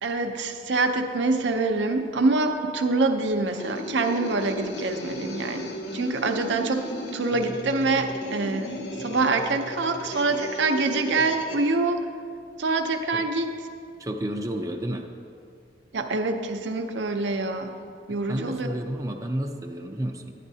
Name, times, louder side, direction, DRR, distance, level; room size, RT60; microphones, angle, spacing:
voice 1, 0.0-6.9 7.1-12.0 12.6-13.5 15.9-17.7 18.1-18.7, right 3 dB, 80° right, 5 dB, 0.6 m, -25 dB
sound 1, 3.5-11.7, left 1 dB, 75° left, 0.8 m, -35 dB
voice 2, 14.0-15.1 18.3-20.3, right 1 dB, 20° right, 2 dB, 0.5 m, -31 dB
10.5 x 10.0 x 2.7 m, 2.3 s
head